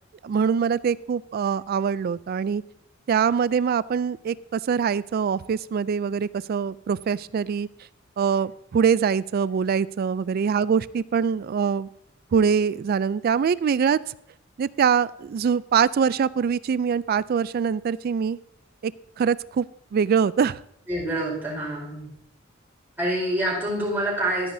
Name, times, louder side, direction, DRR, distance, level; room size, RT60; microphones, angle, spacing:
voice 1, 0.2-2.6 3.1-7.7 8.2-11.9 12.3-14.0 14.6-18.4 18.8-18.9 19.2-19.7 19.9-20.6, right 6 dB, 50° right, 19 dB, 0.3 m, -23 dB
voice 2, 20.9-22.1 23.0-24.5, right 1 dB, 10° right, -5 dB, 4.6 m, -26 dB
12.5 x 10.5 x 2.7 m, 0.76 s
head